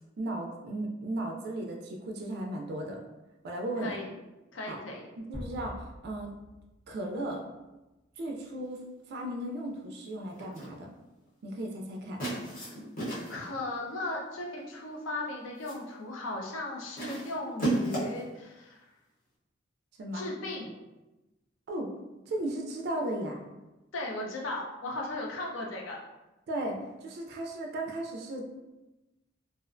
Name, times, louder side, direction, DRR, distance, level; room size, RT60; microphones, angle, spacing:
voice 1, 0.2-3.0 3.4-4.0 4.7-4.8 5.3-6.3 6.9-7.4 8.2-8.8 9.1-10.9 11.4-12.2 20.0-20.2 21.7-21.9 22.3-23.4 26.5-28.4, right 1 dB, 55° right, 1 dB, 0.3 m, -35 dB
voice 2, 3.8-4.1 4.5-5.0 12.6-12.7 13.3-18.9 20.1-20.7 23.9-26.0, left 2 dB, 80° left, -1 dB, 0.5 m, -37 dB
sound 1, 5.3-7.3, equal, 15° left, 0.6 m, -45 dB
sound 2, 10.4-10.8 12.2-13.5 14.6-14.9 15.3-15.9 17.0-18.3, right 1 dB, 45° left, 0.9 m, -34 dB
2.4 x 2.1 x 2.4 m, 1.0 s
head